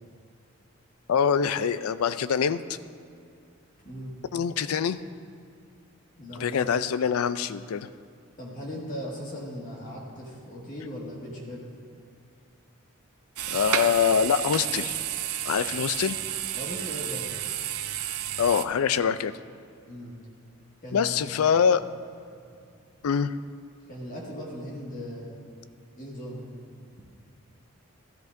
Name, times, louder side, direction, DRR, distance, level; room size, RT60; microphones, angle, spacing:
voice 1, 1.1-2.6 4.3-5.0 6.4-7.9 13.5-15.0 15.5-16.2 18.4-19.3 20.9-21.8 23.0-23.3, left 7 dB, 85° left, 14 dB, 0.4 m, -24 dB
voice 2, 6.2-6.7 8.4-11.6 16.5-17.3 19.9-20.1 20.8-21.4 23.9-25.4 26.0-26.4, equal, 35° left, -4 dB, 1.8 m, -38 dB
sound 1, 13.4-18.6, right 11 dB, 90° right, 0.5 m, -31 dB
14.0 x 13.5 x 2.6 m, 2.4 s
head